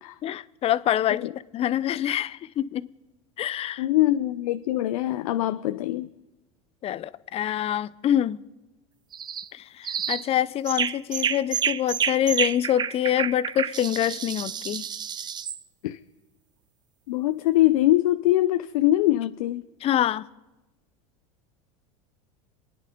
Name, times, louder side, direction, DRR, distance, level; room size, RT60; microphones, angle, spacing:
voice 1, 0.2-2.9 3.4-3.8 6.8-8.4 9.5-14.8 19.8-20.3, left 11 dB, 35° left, 0.5 m, -26 dB
voice 2, 3.8-6.1 15.8-16.0 17.1-19.6, left 15 dB, 80° left, 0.6 m, -23 dB
sound 1, 9.1-9.5 9.8-10.3 10.7-15.6, right 8 dB, 25° right, 0.5 m, -29 dB
27.0 x 10.0 x 5.2 m
supercardioid pair, 110°, 18 cm